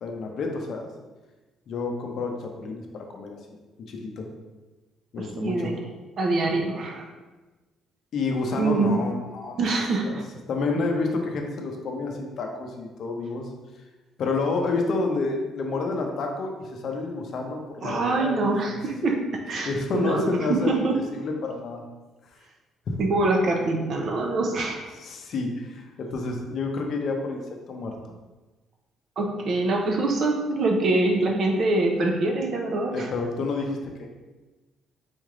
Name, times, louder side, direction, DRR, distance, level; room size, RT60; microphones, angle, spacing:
voice 1, 0.0-0.9 1.7-2.8 3.1-3.6 3.9-4.3 5.1-5.7 8.1-9.6 10.0-10.2 10.5-13.5 14.2-18.8 19.6-20.7 21.1-21.8 22.9-23.0 24.9-27.4 27.7-28.1 32.9-33.9, left 3 dB, 50° left, 2 dB, 0.6 m, -29 dB
voice 2, 5.2-5.7 6.2-7.0 8.6-9.0 9.6-10.2 17.8-20.9 23.0-24.8 29.2-33.1, right 2 dB, 45° right, 2 dB, 0.6 m, -24 dB
4.2 x 3.3 x 3.7 m, 1.2 s
cardioid pair, 165°, 0 cm